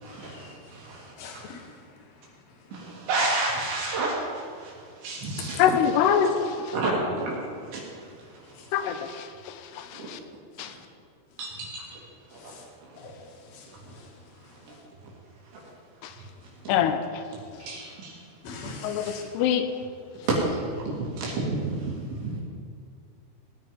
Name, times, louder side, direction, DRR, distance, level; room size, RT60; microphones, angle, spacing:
voice 1, 0.0-1.1 2.7-4.8 5.0-5.6 6.2-6.3 6.7-7.4 7.7-8.1 9.9-10.1 11.4-12.0 17.6-18.2 19.0-19.1 20.3-20.4 20.8-22.0 22.2-22.4, right 3 dB, 90° right, -5 dB, 5.4 m, -30 dB
voice 2, 1.2-1.6 5.4-5.5 12.4-12.6 13.0-13.1 13.5-13.7 13.9-14.0 18.4-19.2, left 4 dB, 65° left, 0 dB, 3.7 m, -41 dB
voice 3, 5.6-6.3 8.7-10.2 10.6-10.7 16.0-16.1 16.7-17.0 18.8-19.7, left 9 dB, 80° left, 8 dB, 2.9 m, -24 dB
19.0 x 9.7 x 5.4 m, 2.2 s
omnidirectional pair, 5.0 m